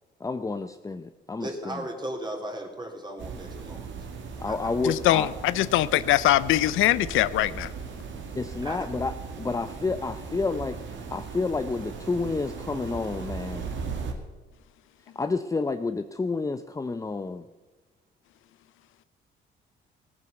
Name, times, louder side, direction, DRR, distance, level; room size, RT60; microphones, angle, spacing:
voice 1, 0.2-1.9 4.4-5.3 8.4-13.7 15.2-17.5, left 3 dB, 15° left, 9 dB, 0.6 m, -30 dB
voice 2, 1.4-3.9 4.5-4.6 8.6-8.9, right 1 dB, 20° right, 2 dB, 3.3 m, -36 dB
sound 1, 3.2-14.1, right 5 dB, 70° right, 2.2 m, -38 dB
voice 3, 4.8-7.7, left 14 dB, 85° left, 17 dB, 0.5 m, -22 dB
17.0 x 9.4 x 7.0 m, 1.2 s
cardioid pair, 90°, 20 cm